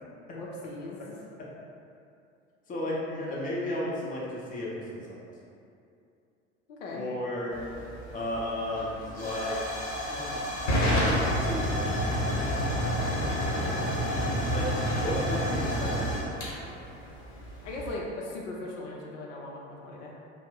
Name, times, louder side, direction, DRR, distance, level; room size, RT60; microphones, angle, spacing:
voice 1, 0.3-1.2 6.7-7.1 17.6-20.1, left 2 dB, 75° left, -3 dB, 0.5 m, -38 dB
voice 2, 2.7-5.2 6.9-7.6 8.1-9.6 9.9-10.4 11.0-11.9 14.5-16.5, left 1 dB, 20° left, -5 dB, 0.7 m, -34 dB
Hiss / Fire / Tick, 7.5-17.9, equal, 45° left, 1.0 m, -29 dB
2.5 x 2.0 x 3.6 m, 2.5 s
hypercardioid pair, 75°, 37 cm